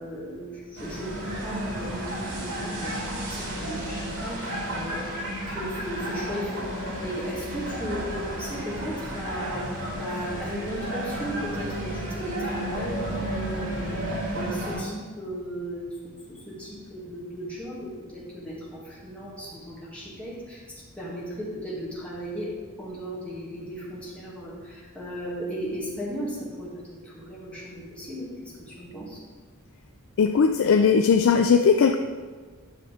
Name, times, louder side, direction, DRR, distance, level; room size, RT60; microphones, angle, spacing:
voice 1, 0.0-5.1 5.4-22.5 22.8-29.2, equal, 5° left, -7 dB, 2.2 m, -36 dB
sound 1, 0.8-14.8, right 1 dB, 75° right, 2.8 m, -32 dB
voice 2, 30.2-32.0, left 6 dB, 60° left, 6 dB, 0.4 m, -19 dB
10.0 x 6.4 x 3.5 m, 1.5 s
head